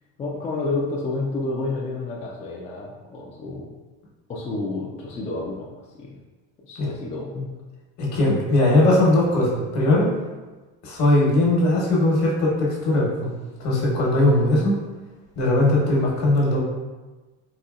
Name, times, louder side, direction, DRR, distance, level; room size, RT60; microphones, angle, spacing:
voice 1, 0.2-3.7 4.3-6.2 6.7-7.5, left 2 dB, 20° left, -3 dB, 0.3 m, -30 dB
voice 2, 8.0-10.1 10.8-13.3 13.6-14.8 15.4-16.6, left 1 dB, 50° left, -3 dB, 1.1 m, -19 dB
4.1 x 2.7 x 2.4 m, 1.2 s
cardioid pair, 125°, 36 cm